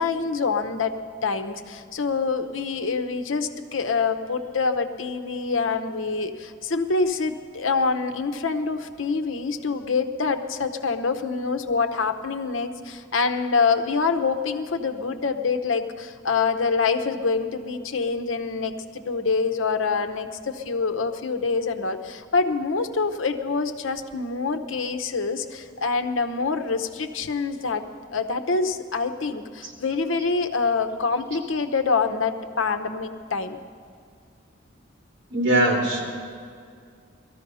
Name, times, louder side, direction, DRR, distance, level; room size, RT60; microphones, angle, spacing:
voice 1, 0.0-27.8 28.1-33.6, left 4 dB, 75° left, 8 dB, 0.9 m, -26 dB
voice 2, 35.3-36.0, right 1 dB, 70° right, -1 dB, 3.6 m, -20 dB
18.5 x 14.0 x 5.5 m, 2.2 s
head